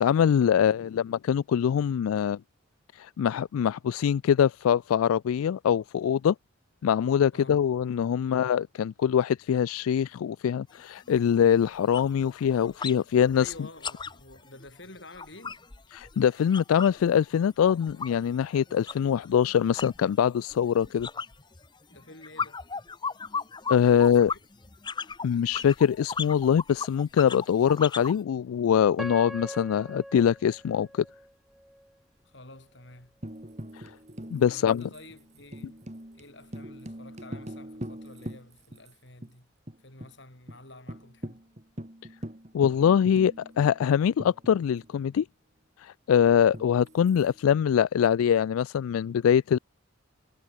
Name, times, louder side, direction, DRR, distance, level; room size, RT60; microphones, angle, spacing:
voice 1, 0.0-2.4 2.9-6.3 6.8-13.5 15.9-21.1 23.7-24.3 25.2-31.0 33.7-33.9 34.3-34.9 42.5-45.3 45.8-49.6, left 8 dB, 90° left, 0.3 m, -23 dB
sound 1, 10.7-10.8 11.2-11.4 11.7-13.0 13.3-17.0 17.3-28.2, left 5 dB, 20° left, 0.7 m, -37 dB
voice 2, 13.4-15.6 21.9-22.6 23.9-24.4 32.2-33.2 34.5-35.9 36.1-39.5 39.8-41.4, left 2 dB, 55° left, 6.4 m, -49 dB
Piano, 29.0-32.0 32.6-32.7 33.3-33.5, equal, ahead, 1.2 m, -42 dB
Tambourine, 33.2-38.9 39.2-39.3 39.7-40.1 40.5-40.6 40.9-45.0 46.5-47.5, equal, 35° right, 2.7 m, -42 dB
head